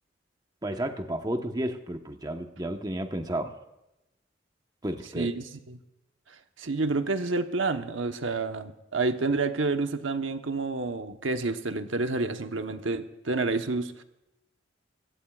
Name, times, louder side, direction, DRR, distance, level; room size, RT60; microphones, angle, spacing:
voice 1, 0.6-3.5 4.8-5.3, right 1 dB, 20° right, 5 dB, 1.1 m, -32 dB
voice 2, 5.1-5.8 6.6-14.0, right 3 dB, 90° right, 7 dB, 1.1 m, -29 dB
24.0 x 16.0 x 2.4 m, 0.92 s
head